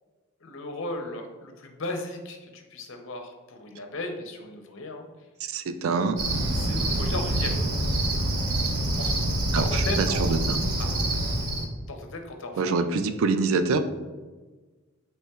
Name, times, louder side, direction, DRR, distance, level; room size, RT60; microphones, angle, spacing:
voice 1, 0.4-5.1 6.5-7.6 8.9-9.2 9.5-10.3 10.8-10.9 11.9-12.6, left 2 dB, 55° left, 4 dB, 0.6 m, -36 dB
voice 2, 5.5-6.2 9.5-10.6 12.6-13.8, right 4 dB, 70° right, 9 dB, 0.3 m, -25 dB
Cricket, 6.2-11.7, right 1 dB, 90° right, 0.7 m, -26 dB
5.7 x 3.2 x 2.3 m, 1.3 s
head